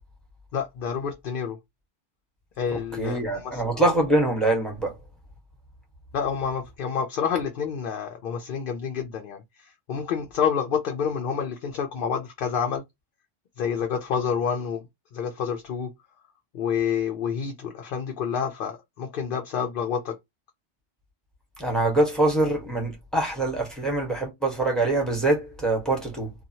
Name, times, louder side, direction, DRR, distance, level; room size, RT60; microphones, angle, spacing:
voice 1, 0.5-1.6 2.6-3.8 6.1-12.8 13.6-14.8 15.1-15.9 16.5-20.2, left 7 dB, 60° left, 0.7 m, -28 dB
voice 2, 2.7-4.9 21.6-26.3, right 2 dB, ahead, 1.1 m, -24 dB
2.8 x 2.3 x 2.7 m
omnidirectional pair, 1.2 m